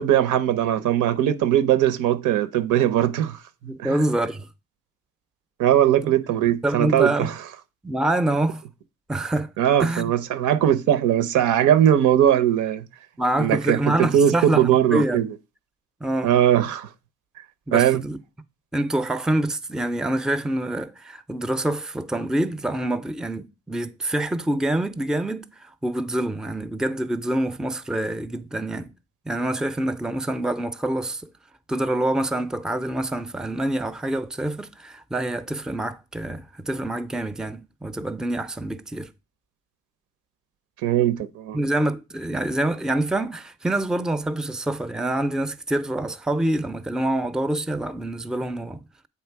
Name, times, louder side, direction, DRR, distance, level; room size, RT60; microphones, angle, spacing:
voice 1, 0.0-3.4 3.6-4.0 5.6-7.3 9.6-12.8 13.4-15.3 16.2-16.9 17.7-18.0 40.8-41.6, right 11 dB, 85° right, 0.7 m, -20 dB
voice 2, 3.6-4.5 6.4-7.3 7.8-8.6 9.1-9.5 9.8-10.1 13.2-15.3 16.0-16.3 17.7-18.2 18.7-28.9 29.3-31.3 31.7-39.1 41.5-48.8, right 1 dB, ahead, 0.4 m, -26 dB
8.0 x 3.1 x 4.5 m
cardioid pair, 90°, 30 cm